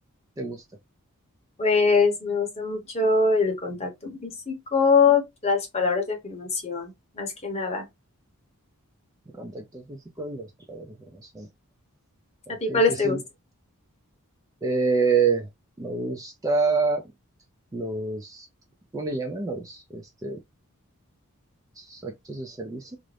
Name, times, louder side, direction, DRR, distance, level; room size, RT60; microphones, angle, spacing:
voice 1, 1.6-7.8 12.6-13.2, left 4 dB, 30° left, 0.8 m, -23 dB
voice 2, 9.3-11.5 12.5-13.2 14.6-15.5 15.8-17.0 17.7-18.5 18.9-20.4 21.8-23.0, right 4 dB, 15° right, 0.3 m, -28 dB
2.5 x 2.0 x 3.1 m
head